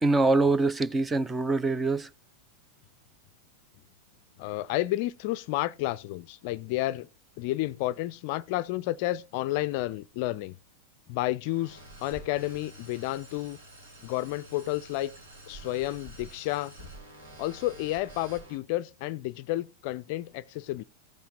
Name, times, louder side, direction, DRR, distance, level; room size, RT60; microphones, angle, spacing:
voice 1, 0.0-2.1, right 3 dB, 15° right, 0.6 m, -24 dB
voice 2, 4.4-7.1 7.4-10.6 11.1-13.6 14.0-15.1 15.5-16.7 17.4-20.8, left 16 dB, 45° left, 0.4 m, -31 dB
sound 1, 11.4-18.6, right 1 dB, 75° right, 3.3 m, -48 dB
15.5 x 5.7 x 4.0 m
figure-of-eight pair, 90°, 0 cm